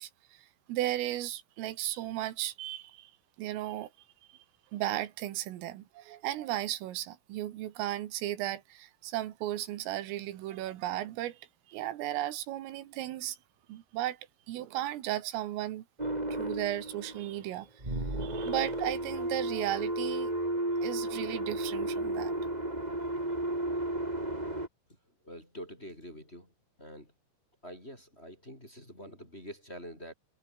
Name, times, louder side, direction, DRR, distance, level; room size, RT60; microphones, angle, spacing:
voice 1, 0.0-3.1 3.4-3.9 4.3-4.4 4.7-13.4 13.7-15.8 16.4-20.3 20.8-22.3, right 14 dB, 90° right, 4.3 m, -35 dB
sound 1, 16.0-17.4 17.8-24.7, right 1 dB, 10° right, 3.9 m, -33 dB
voice 2, 25.2-26.5 26.8-27.1 27.6-30.1, equal, 10° left, 5.4 m, -46 dB
omnidirectional pair, 5.7 m